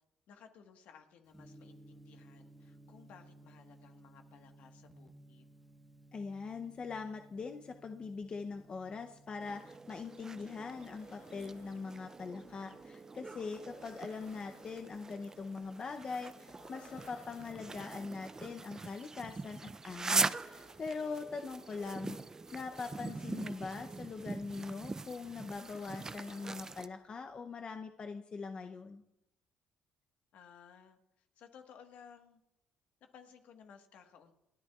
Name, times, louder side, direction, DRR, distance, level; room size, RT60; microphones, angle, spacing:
voice 1, 0.3-5.5 30.3-32.4 33.0-34.3, left 7 dB, 70° left, 5 dB, 1.4 m, -58 dB
Gong, 1.3-19.9, right 1 dB, ahead, 1.2 m, -61 dB
voice 2, 6.1-22.2 22.5-29.0, left 4 dB, 35° left, 6 dB, 0.6 m, -42 dB
sound 1, 9.4-26.9, right 3 dB, 20° right, 0.4 m, -42 dB
sound 2, 9.9-10.0 10.2-27.3, left 5 dB, 85° left, 1.5 m, -62 dB
29.0 x 9.8 x 2.4 m, 0.85 s
cardioid pair, 90°, 3 cm